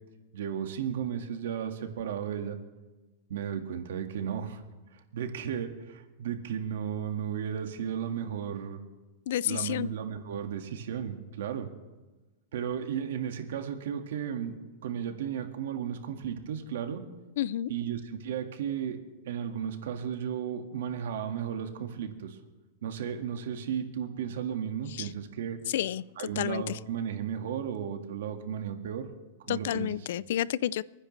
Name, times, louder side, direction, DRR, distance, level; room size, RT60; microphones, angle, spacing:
voice 1, 0.3-2.6 3.3-4.6 4.9-8.8 9.4-11.7 12.5-14.6 14.8-17.0 17.7-19.0 19.2-22.4 22.8-25.6 26.2-29.1 29.5-29.9, right 8 dB, 80° right, 6 dB, 1.7 m, -34 dB
voice 2, 9.3-9.9 17.4-17.7 25.0-25.1 25.7-26.0 26.4-26.8 29.5-30.8, left 12 dB, 70° left, 21 dB, 0.4 m, -30 dB
29.5 x 9.9 x 3.3 m, 1.2 s
supercardioid pair, 155°, 0 cm